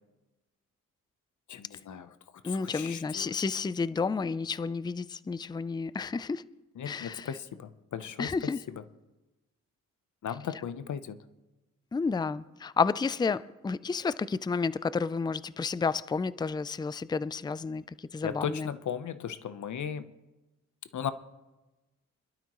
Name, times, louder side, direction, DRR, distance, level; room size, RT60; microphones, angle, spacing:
voice 1, 1.5-2.1 2.4-3.3 6.8-8.8 10.2-11.2 18.2-20.1 20.9-21.1, left 8 dB, 65° left, 0.9 m, -37 dB
voice 2, 2.4-6.5 6.9-7.3 8.2-8.6 11.9-18.7, left 4 dB, 15° left, 0.4 m, -31 dB
25.5 x 12.0 x 3.1 m
cardioid pair, 70°, 33 cm